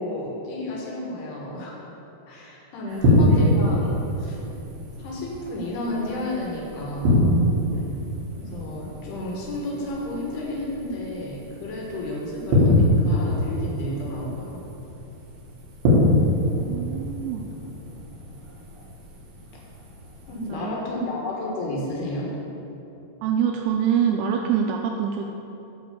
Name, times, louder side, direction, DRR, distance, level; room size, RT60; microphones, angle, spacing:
voice 1, 0.0-1.8 2.3-4.4 5.0-7.2 8.4-14.6 20.3-22.3, left 1 dB, 65° left, -3 dB, 3.2 m, -31 dB
sound 1, 2.9-20.5, left 1 dB, 60° right, 1.8 m, -25 dB
voice 2, 16.5-17.5 20.3-20.8 23.2-25.3, right 8 dB, 85° right, 2 dB, 2.8 m, -25 dB
11.5 x 4.6 x 6.8 m, 2.9 s
omnidirectional pair, 5.8 m